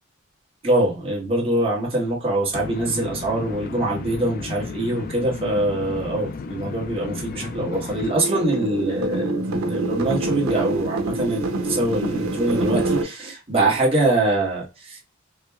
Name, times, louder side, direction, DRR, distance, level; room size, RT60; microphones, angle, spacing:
voice 1, 0.6-15.0, right 2 dB, 30° right, 1.2 m, -24 dB
sound 1, 2.5-8.2, left 4 dB, 45° left, 0.3 m, -34 dB
sound 2, 8.0-13.0, right 2 dB, 85° right, 0.6 m, -25 dB
4.9 x 2.1 x 2.3 m
head